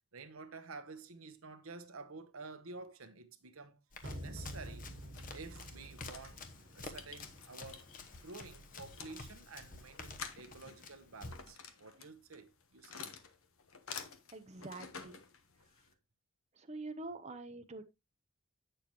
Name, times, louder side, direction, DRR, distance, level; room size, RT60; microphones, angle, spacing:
voice 1, 0.1-3.8 4.2-4.9 5.3-6.4 6.7-7.9 8.2-13.1, right 3 dB, 80° right, 1.2 m, -50 dB
Run, 3.9-11.6, left 3 dB, 40° left, 1.1 m, -51 dB
sound 1, 4.0-8.0, equal, 65° right, 1.8 m, -49 dB
sound 2, 4.8-15.9, left 6 dB, 75° left, 1.2 m, -51 dB
voice 2, 14.3-15.2 16.5-17.8, right 2 dB, 30° right, 0.7 m, -45 dB
8.9 x 6.9 x 3.0 m
head